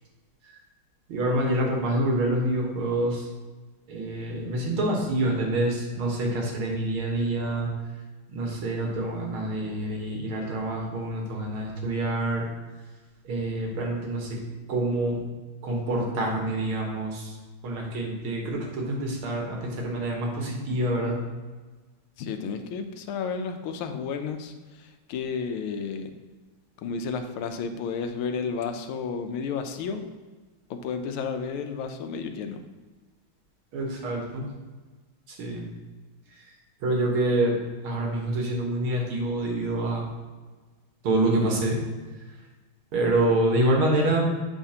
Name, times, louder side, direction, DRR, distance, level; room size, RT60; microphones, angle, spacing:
voice 1, 1.1-3.3 3.9-7.7 8.3-12.5 13.2-14.4 14.7-15.2 15.6-17.4 17.6-21.2 33.7-34.5 35.3-35.7 36.3-36.5 36.8-37.6 37.8-40.1 41.0-41.8 42.9-44.2, right 1 dB, 85° right, -1 dB, 2.2 m, -26 dB
voice 2, 22.2-26.1 26.8-30.1 30.7-32.6, left 5 dB, 90° left, 7 dB, 1.5 m, -32 dB
8.2 x 5.7 x 2.8 m, 1.3 s
omnidirectional pair, 2.3 m